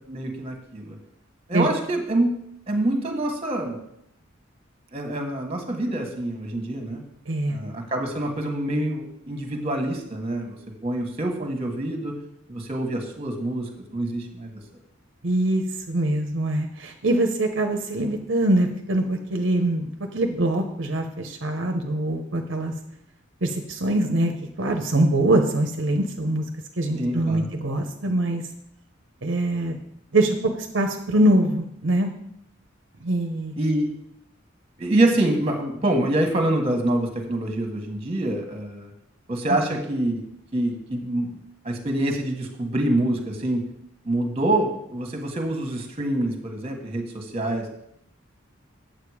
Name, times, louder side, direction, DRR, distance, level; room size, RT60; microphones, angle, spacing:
voice 1, 0.1-1.0 1.5-2.3 2.7-3.8 4.9-7.0 7.5-10.6 10.8-12.2 12.5-14.6 26.9-27.5 33.6-33.9 34.8-38.9 39.3-40.2 40.5-41.3 41.6-43.6 44.0-47.7, right 1 dB, 30° right, 3 dB, 1.4 m, -26 dB
voice 2, 7.3-7.6 15.2-22.7 23.4-24.3 24.6-26.4 26.8-28.4 29.2-29.8 30.1-30.4 30.7-32.1 33.0-33.5, right 1 dB, 65° right, 4 dB, 0.8 m, -23 dB
8.8 x 7.6 x 4.9 m, 0.77 s
head